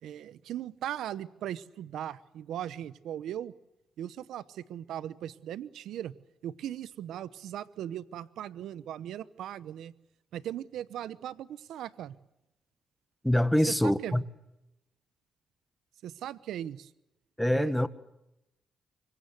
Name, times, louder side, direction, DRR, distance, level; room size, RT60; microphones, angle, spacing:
voice 1, 0.0-3.5 4.0-6.2 6.4-9.9 10.3-12.1 13.7-14.2 16.0-16.9 17.5-17.9, right 11 dB, 85° right, 0.9 m, -38 dB
voice 2, 13.2-14.2 17.4-17.9, left 1 dB, 5° left, 1.5 m, -25 dB
25.0 x 23.0 x 8.0 m
cardioid pair, 75°, 0 cm